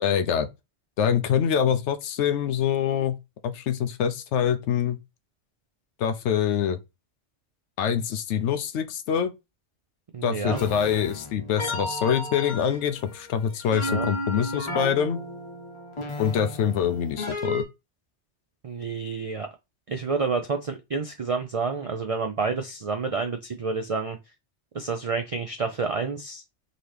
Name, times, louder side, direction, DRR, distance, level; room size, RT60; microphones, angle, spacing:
voice 1, 0.0-0.5 1.0-3.2 3.4-5.0 6.0-6.8 7.8-9.3 10.2-15.2 16.2-17.6, left 8 dB, 75° left, 0.9 m, -25 dB
voice 2, 10.1-10.6 13.8-14.1 18.6-19.5 19.9-24.2 24.7-26.4, right 4 dB, 65° right, 0.3 m, -29 dB
sound 1, 10.5-17.6, left 1 dB, 30° left, 0.8 m, -33 dB
3.8 x 2.8 x 3.2 m
omnidirectional pair, 1.2 m